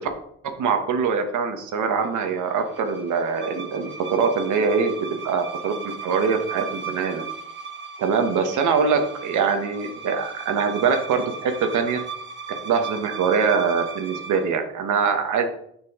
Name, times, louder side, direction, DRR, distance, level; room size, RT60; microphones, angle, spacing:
voice 1, 0.4-7.2 8.0-12.0 12.6-15.5, right 5 dB, 75° right, 6 dB, 1.2 m, -23 dB
sound 1, 1.8-14.5, right 5 dB, 40° right, 1.3 m, -36 dB
7.3 x 6.0 x 3.7 m, 0.71 s
cardioid pair, 90°, 30 cm